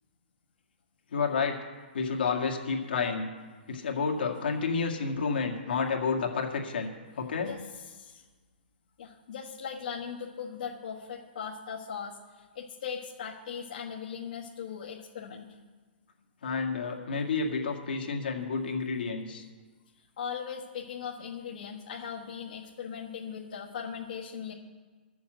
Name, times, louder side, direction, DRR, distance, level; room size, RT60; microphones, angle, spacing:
voice 1, 1.1-1.6 1.9-3.3 3.7-7.5 16.4-19.4, left 5 dB, 70° left, 0 dB, 2.0 m, -30 dB
voice 2, 7.9-8.2 9.0-15.6 20.2-24.5, left 7 dB, 50° left, -5 dB, 1.4 m, -39 dB
12.0 x 7.2 x 7.8 m, 1.4 s
hypercardioid pair, 180°, 6 cm